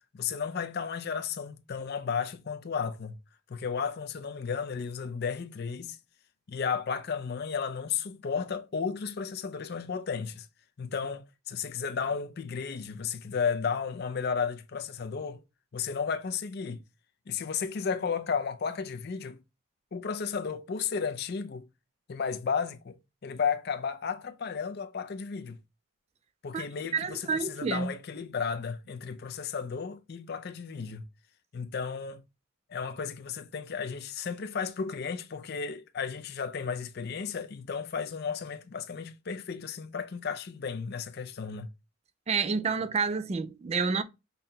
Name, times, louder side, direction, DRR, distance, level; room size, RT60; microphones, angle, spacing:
voice 1, 0.1-3.2 3.5-6.0 6.5-10.5 10.8-15.4 15.7-16.8 17.3-19.4 19.9-21.7 22.1-23.0 23.2-25.6 26.4-31.0 31.5-32.2 32.7-41.7, left 6 dB, 50° left, 0.4 m, -33 dB
voice 2, 26.9-27.9 42.3-44.0, right 5 dB, 30° right, 0.3 m, -29 dB
5.4 x 2.1 x 2.7 m
head